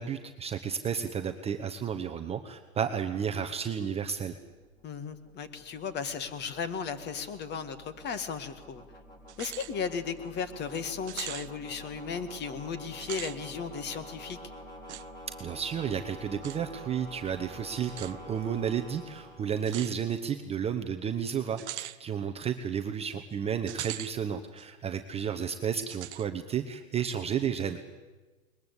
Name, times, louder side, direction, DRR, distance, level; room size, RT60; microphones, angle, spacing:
voice 1, 0.0-4.3 15.4-27.8, right 8 dB, 15° right, 6 dB, 0.9 m, -32 dB
sound 1, 4.3-20.3, equal, 10° left, 3.7 m, -48 dB
voice 2, 4.8-8.8 9.4-14.4, left 6 dB, 25° left, 12 dB, 1.8 m, -35 dB
sound 2, 9.3-9.7 10.2-10.3 11.1-11.5 12.9-13.4 14.9-15.1 16.4-16.6 17.9-18.1 19.7-20.0 21.6-22.0 23.7-24.1 24.6-24.7 25.9-26.3, right 14 dB, 55° right, 0.8 m, -40 dB
21.5 x 20.5 x 8.2 m, 1.2 s
hypercardioid pair, 120°, 40 cm